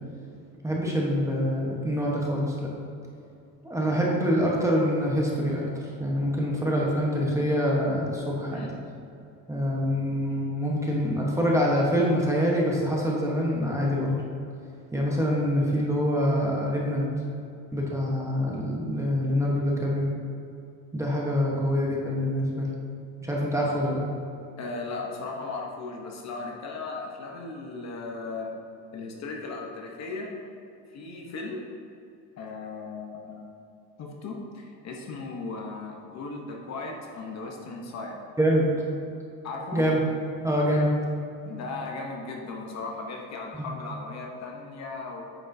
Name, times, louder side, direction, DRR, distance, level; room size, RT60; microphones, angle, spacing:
voice 1, 0.6-2.5 3.6-5.6 6.0-8.7 9.5-14.1 14.9-17.1 17.7-20.1 20.9-22.7 23.2-24.0 38.4-38.7 39.7-40.0 40.4-40.9 43.6-43.7, equal, 5° right, -3 dB, 1.0 m, -25 dB
voice 2, 8.4-8.8 24.6-28.5 28.9-30.4 30.9-31.7 32.4-33.5 34.0-38.2 39.4-39.9 41.5-45.2, left 3 dB, 40° left, 0 dB, 0.9 m, -37 dB
9.0 x 6.5 x 2.7 m, 2.6 s
cardioid pair, 145°, 40 cm